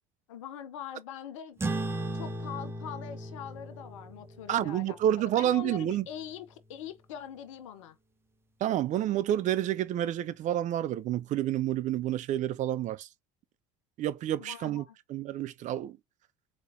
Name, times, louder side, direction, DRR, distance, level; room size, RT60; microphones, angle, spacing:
voice 1, 0.3-1.6 2.1-5.0 5.3-8.0 14.4-15.0, left 9 dB, 85° left, 0.7 m, -42 dB
sound 1, 1.6-6.5, right 2 dB, 15° right, 1.2 m, -38 dB
voice 2, 4.5-6.1 8.6-13.1 14.0-16.0, right 12 dB, 50° right, 0.7 m, -29 dB
4.1 x 3.1 x 2.6 m
hypercardioid pair, 75°, 16 cm